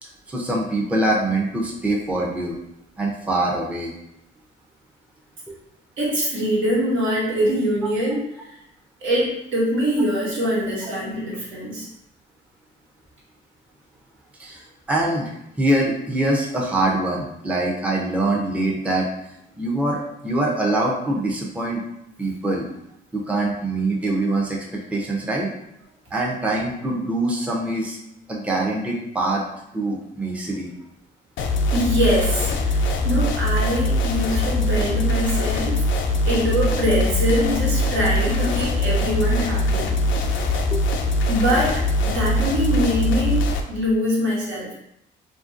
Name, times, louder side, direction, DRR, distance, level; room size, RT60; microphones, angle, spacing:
voice 1, 0.0-2.6 3.0-3.9 14.4-21.8 22.2-22.7 23.1-25.5 26.1-28.0 28.3-29.4 29.7-30.7 40.7-40.8, right 2 dB, 5° right, -2 dB, 0.5 m, -24 dB
voice 2, 6.0-8.3 9.0-11.9 31.7-35.8 36.2-39.9 41.3-44.7, equal, 80° right, -6 dB, 1.2 m, -23 dB
sound 1, 31.4-43.6, left 1 dB, 70° left, 0.4 m, -22 dB
2.8 x 2.6 x 2.4 m, 0.80 s
cardioid pair, 90°, 20 cm